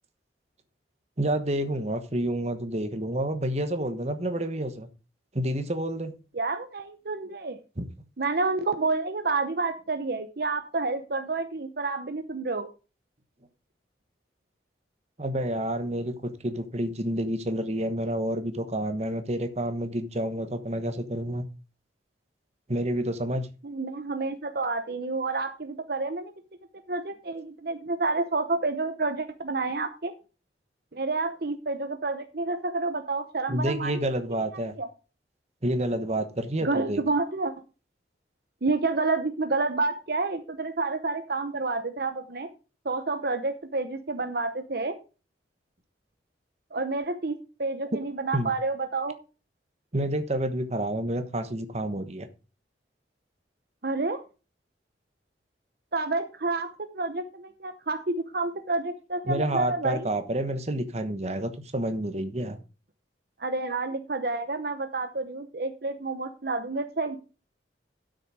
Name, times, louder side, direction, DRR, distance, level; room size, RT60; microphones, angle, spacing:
voice 1, 1.2-4.9 5.3-6.1 7.8-7.9 15.2-21.5 22.7-23.5 33.5-34.7 35.6-37.0 48.3-48.5 49.9-52.3 59.3-62.6, right 1 dB, 35° right, 1.2 m, -29 dB
voice 2, 6.3-7.6 8.2-12.7 23.6-26.3 26.9-30.1 30.9-33.9 34.5-34.9 36.6-37.5 38.6-42.5 42.8-45.0 46.7-49.2 53.8-54.2 55.9-60.1 63.4-67.2, right 3 dB, 55° right, 0.8 m, -29 dB
12.0 x 6.5 x 4.7 m
head